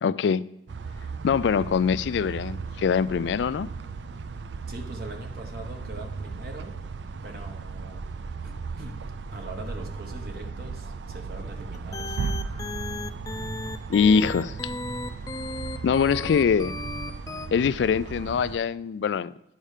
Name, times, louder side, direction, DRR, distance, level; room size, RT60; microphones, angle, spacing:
voice 1, 0.0-0.4 1.2-3.7 13.9-14.6 15.8-16.7 17.5-19.3, left 6 dB, 75° left, 0.3 m, -23 dB
sound 1, 0.7-18.6, right 4 dB, 80° right, 0.4 m, -36 dB
voice 2, 4.7-6.7 7.2-8.0 8.4-9.0 9.3-12.2, right 1 dB, 55° right, 1.0 m, -41 dB
sound 2, 11.7-17.5, left 2 dB, 20° left, 0.5 m, -35 dB
10.0 x 5.5 x 4.9 m
head